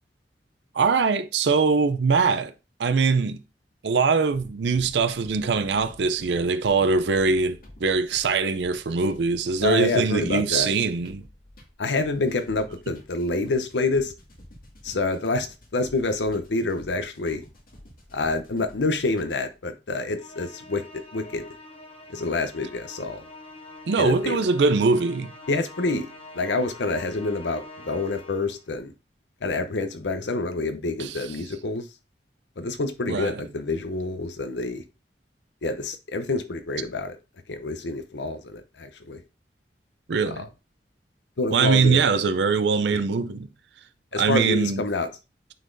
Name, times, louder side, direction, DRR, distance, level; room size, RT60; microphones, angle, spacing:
voice 1, 0.7-2.5 2.8-3.4 3.8-11.2 23.9-25.3 31.0-31.1 33.1-33.3 40.1-40.4 41.5-43.5 44.2-44.8, right 4 dB, 75° right, 0.5 m, -22 dB
sound 1, 4.3-19.6, equal, 55° left, 2.0 m, -49 dB
voice 2, 9.6-10.7 11.8-14.1 14.8-17.4 18.1-21.5 22.1-23.3 24.0-24.4 25.5-26.1 26.3-28.9 29.4-31.9 32.6-34.8 35.6-37.2 37.5-39.2 40.3-40.5 41.4-42.1 42.9-43.0 44.1-45.1, left 3 dB, 85° left, 0.7 m, -27 dB
Musical instrument, 20.2-28.7, left 2 dB, 35° left, 1.0 m, -45 dB
9.1 x 4.0 x 2.6 m
head